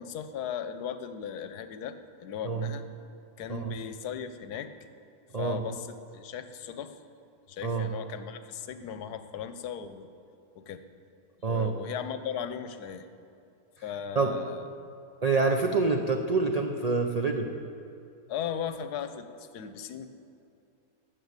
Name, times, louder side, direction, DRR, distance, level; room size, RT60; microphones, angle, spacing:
voice 1, 0.0-2.8 3.4-4.7 5.4-6.9 7.5-10.1 10.5-10.8 11.4-13.1 13.8-14.7 18.3-20.1, left 8 dB, 90° left, 10 dB, 1.2 m, -37 dB
voice 2, 11.4-11.7 14.2-14.3 15.2-17.5, right 4 dB, 65° right, 3 dB, 0.3 m, -26 dB
13.5 x 6.2 x 8.0 m, 2.6 s
omnidirectional pair, 1.7 m